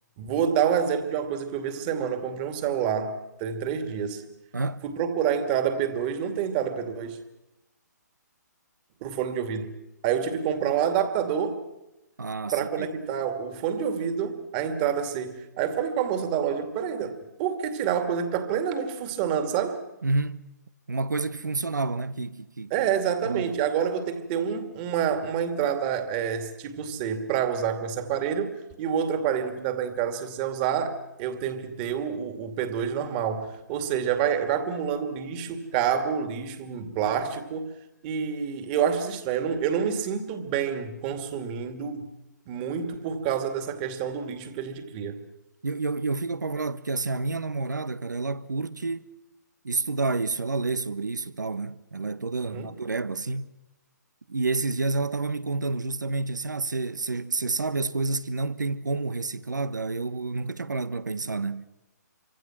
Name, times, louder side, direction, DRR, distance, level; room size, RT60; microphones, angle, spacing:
voice 1, 0.2-4.2 4.8-7.2 9.0-9.7 10.0-11.6 12.5-19.8 22.7-37.7 38.0-42.1 42.5-45.2 52.5-52.7, right 8 dB, 30° right, 2.4 m, -28 dB
voice 2, 4.5-4.8 12.2-12.9 20.0-20.4 20.9-22.7 23.3-23.5 45.6-49.1 49.6-53.5 54.3-61.7, right 3 dB, 80° right, 1.1 m, -29 dB
27.0 x 25.0 x 6.1 m
figure-of-eight pair, 140°, 10 cm